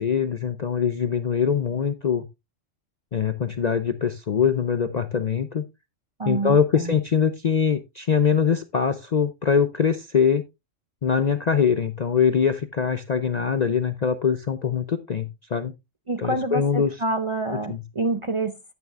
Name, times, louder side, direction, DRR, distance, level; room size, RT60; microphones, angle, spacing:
voice 1, 0.0-2.2 3.1-5.6 6.3-10.4 11.0-15.7 16.2-16.9 17.7-17.8, left 7 dB, 50° left, 0.5 m, -23 dB
voice 2, 6.2-7.0 16.1-18.7, right 2 dB, 35° right, 0.6 m, -27 dB
10.5 x 9.4 x 2.4 m
omnidirectional pair, 1.3 m